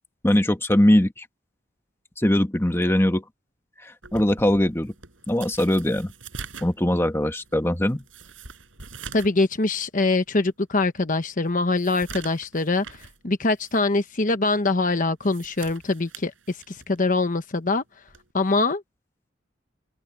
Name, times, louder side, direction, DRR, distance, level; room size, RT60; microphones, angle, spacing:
voice 1, 0.2-1.2 2.2-3.2 3.8-4.9 5.3-6.1 6.6-8.0, left 1 dB, 15° left, 1.3 m, -21 dB
sound 1, 4.0-9.4 9.8-9.9 10.4-10.5 11.0-13.2 13.6-13.8 15.0-17.0 18.1-18.3, right 5 dB, 85° right, 6.9 m, -43 dB
voice 2, 9.1-12.8 13.2-16.3 16.7-17.8 18.3-18.8, left 3 dB, 45° left, 1.0 m, -23 dB
head